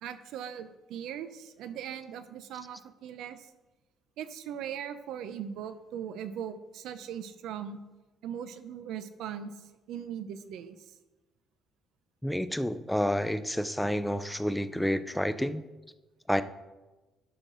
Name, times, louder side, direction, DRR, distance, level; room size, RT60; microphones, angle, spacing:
voice 1, 0.0-3.5 4.2-7.8 8.2-10.9, right 9 dB, 80° right, 11 dB, 0.7 m, -39 dB
voice 2, 12.2-15.6 16.3-16.4, equal, 5° left, 11 dB, 0.4 m, -29 dB
11.0 x 5.9 x 3.9 m, 1.1 s
cardioid pair, 130°, 0 cm